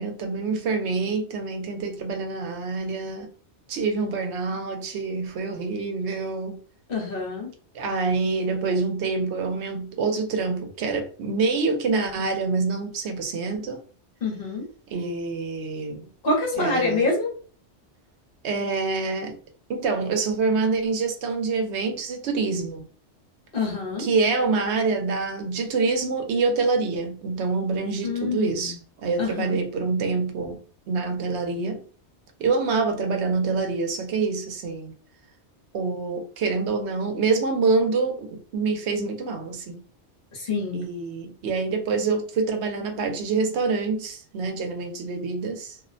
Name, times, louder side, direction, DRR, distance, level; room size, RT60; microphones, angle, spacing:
voice 1, 0.0-3.3 3.7-6.6 7.7-13.8 14.9-16.1 16.6-17.1 18.4-19.3 19.7-22.8 24.0-28.7 29.0-30.6 30.9-31.8 32.4-34.9 35.7-39.8 40.7-45.8, right 4 dB, 75° right, 0.8 m, -26 dB
voice 2, 6.9-7.5 14.2-14.7 16.2-17.3 23.5-24.1 28.0-28.8 29.2-29.6 40.3-40.8, left 3 dB, 55° left, 1.0 m, -26 dB
2.4 x 2.0 x 2.5 m
omnidirectional pair, 1.2 m